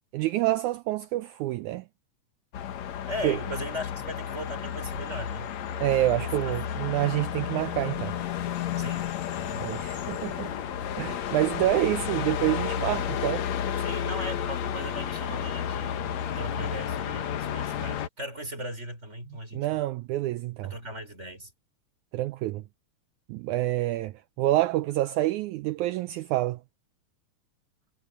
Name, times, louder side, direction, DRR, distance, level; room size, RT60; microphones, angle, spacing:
voice 1, 0.1-1.8 3.2-3.4 5.8-8.1 9.6-10.5 11.0-13.5 19.5-20.7 22.1-22.6 23.3-26.6, right 15 dB, 80° right, 1.8 m, -27 dB
sound 1, 2.5-18.1, left 9 dB, 60° left, 2.2 m, -32 dB
voice 2, 3.1-5.5 6.1-6.6 8.8-9.1 9.4-9.8 13.8-19.8 20.6-21.5, equal, 20° right, 6.2 m, -38 dB
omnidirectional pair, 3.9 m